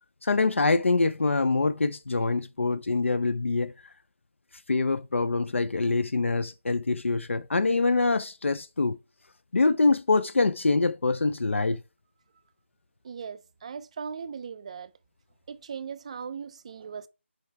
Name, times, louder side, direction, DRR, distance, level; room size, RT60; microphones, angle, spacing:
voice 1, 0.2-3.9 4.7-9.0 9.5-11.8, left 3 dB, 75° left, 0.5 m, -25 dB
voice 2, 13.0-14.9 15.5-17.1, right 6 dB, 30° right, 0.4 m, -38 dB
5.3 x 4.7 x 4.6 m
figure-of-eight pair, 160°, 7 cm